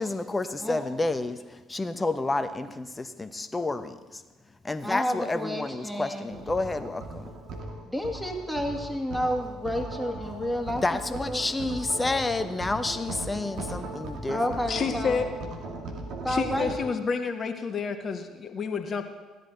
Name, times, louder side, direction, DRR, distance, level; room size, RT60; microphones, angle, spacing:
voice 1, 0.0-4.2 4.6-7.3 10.8-14.4, left 2 dB, 20° left, 10 dB, 1.0 m, -30 dB
voice 2, 4.8-6.3 7.9-10.8 11.1-11.4 14.3-15.2 16.2-16.7, equal, ahead, 3 dB, 2.2 m, -30 dB
sound 1, 6.3-16.8, right 2 dB, 65° right, 1.9 m, -38 dB
voice 3, 14.7-15.3 16.3-19.0, left 5 dB, 45° left, 6 dB, 1.4 m, -29 dB
15.5 x 11.0 x 4.0 m, 1.2 s
hypercardioid pair, 55°, 0 cm